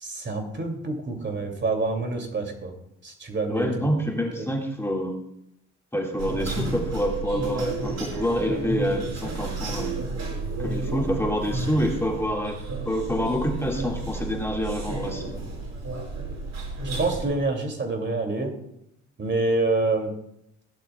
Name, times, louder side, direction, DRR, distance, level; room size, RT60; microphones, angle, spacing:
voice 1, 0.0-2.7 3.0-3.9 17.0-18.5 19.2-20.1, right 3 dB, 40° right, 3 dB, 2.6 m, -27 dB
voice 2, 3.5-5.1 5.9-9.9 10.6-15.4, equal, 10° left, 0 dB, 1.9 m, -27 dB
sound 1, 6.2-17.2, right 3 dB, 60° right, 5.1 m, -32 dB
16.5 x 11.5 x 2.3 m, 0.80 s
cardioid pair, 90°, 30 cm